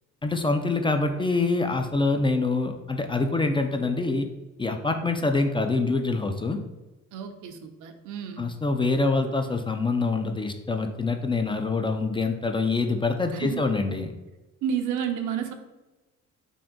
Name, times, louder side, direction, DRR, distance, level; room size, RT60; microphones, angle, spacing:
voice 1, 0.2-4.3 4.6-6.6 8.4-14.1, left 3 dB, 15° left, 5 dB, 0.3 m, -25 dB
voice 2, 7.1-8.5 13.3-13.6 14.6-15.5, right 8 dB, 80° right, 7 dB, 0.5 m, -31 dB
3.6 x 2.5 x 3.6 m, 1.1 s
cardioid pair, 90°, 30 cm